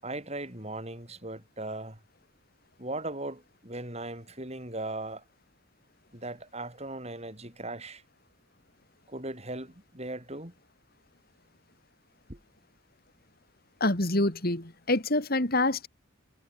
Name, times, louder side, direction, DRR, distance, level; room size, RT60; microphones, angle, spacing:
voice 1, 0.0-2.0 2.8-5.2 6.1-8.0 9.1-10.5 12.3-12.4, right 2 dB, 30° right, 6.0 m, -38 dB
voice 2, 13.8-15.9, left 2 dB, 45° left, 3.0 m, -26 dB
head